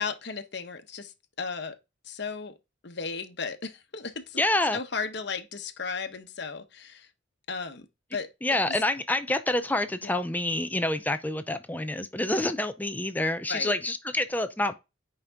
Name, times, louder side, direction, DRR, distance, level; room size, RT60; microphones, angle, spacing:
voice 1, 0.0-1.8 2.0-2.5 2.8-4.4 4.7-7.1 7.5-7.9 8.1-8.3 10.0-10.2 13.5-13.8, left 5 dB, 60° left, 1.1 m, -35 dB
voice 2, 4.4-4.8 8.4-14.7, left 1 dB, 10° left, 0.5 m, -27 dB
9.6 x 5.2 x 3.6 m
head